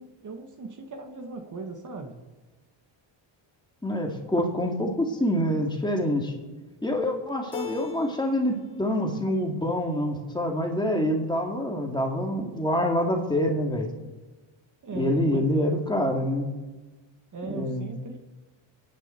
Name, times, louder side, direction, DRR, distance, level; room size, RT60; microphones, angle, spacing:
voice 1, 0.0-2.1 14.8-15.7 17.3-18.2, right 3 dB, 40° right, 4 dB, 1.7 m, -38 dB
voice 2, 3.8-6.3 6.8-13.9 14.9-16.5 17.4-17.9, left 1 dB, 10° left, 1 dB, 2.3 m, -26 dB
Keyboard (musical), 7.5-8.6 8.9-9.7, left 11 dB, 50° left, 1.7 m, -40 dB
29.5 x 10.5 x 4.5 m, 1.2 s
cardioid pair, 135°, 48 cm